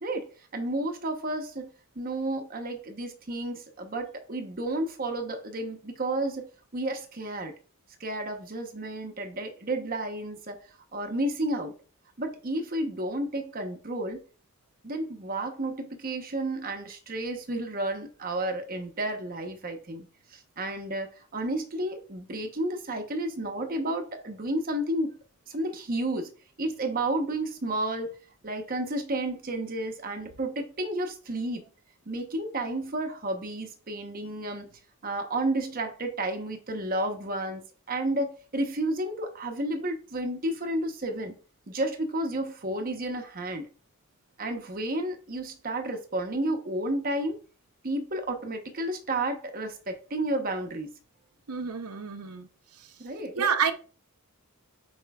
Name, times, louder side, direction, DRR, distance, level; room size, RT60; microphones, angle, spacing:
voice 1, 0.0-1.7 2.0-6.5 6.7-7.5 8.0-10.6 10.9-11.7 12.2-14.2 14.8-20.1 20.3-25.1 25.5-26.3 26.6-28.1 28.4-31.6 32.1-34.7 35.0-41.3 41.7-43.7 44.4-47.4 47.8-50.9 53.0-53.4, right 1 dB, 40° right, 1.0 m, -31 dB
voice 2, 51.5-52.5 53.4-53.7, right 6 dB, 85° right, 0.8 m, -28 dB
7.6 x 5.3 x 2.3 m
head